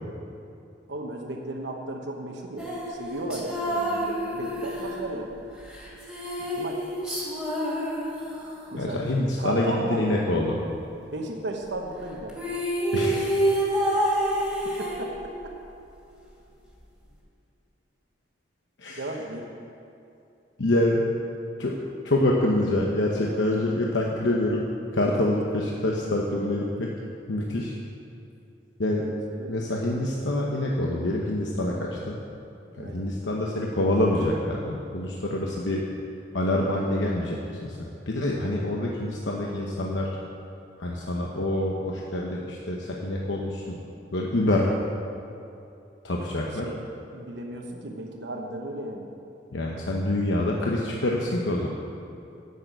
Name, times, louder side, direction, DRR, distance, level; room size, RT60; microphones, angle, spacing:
voice 1, 0.9-5.3 6.4-6.8 8.7-9.0 9.4-10.2 11.0-12.4 14.8-15.5 19.0-19.5 28.9-29.6 32.8-33.0 46.7-49.1, right 1 dB, 75° right, 2 dB, 1.0 m, -35 dB
sound 1, 2.6-8.7 12.0-12.1 12.3-15.5, right 1 dB, 5° right, 2.5 m, -28 dB
voice 2, 8.7-10.6 12.9-13.6 14.3-14.4 18.8-19.0 20.6-21.0 21.6-21.7 22.0-24.7 24.9-26.9 27.3-27.8 28.8-29.0 29.5-32.2 32.8-35.8 36.3-40.1 40.8-43.8 44.1-44.7 46.0-46.7 49.5-51.7, left 1 dB, 90° left, -2 dB, 1.0 m, -26 dB
10.5 x 6.6 x 7.8 m, 2.6 s
head